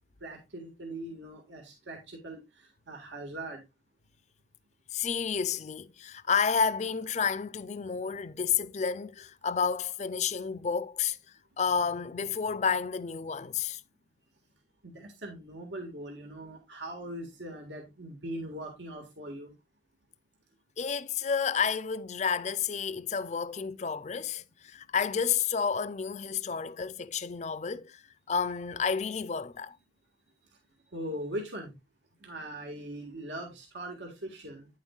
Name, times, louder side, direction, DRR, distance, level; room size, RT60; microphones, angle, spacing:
voice 1, 0.2-3.6 14.8-19.5 30.9-31.8 32.2-34.7, right 1 dB, 90° right, 1.7 m, -40 dB
voice 2, 4.9-11.2 11.6-13.8 20.8-28.0 28.3-29.8, left 6 dB, 40° left, 0.4 m, -30 dB
9.4 x 7.3 x 2.3 m
head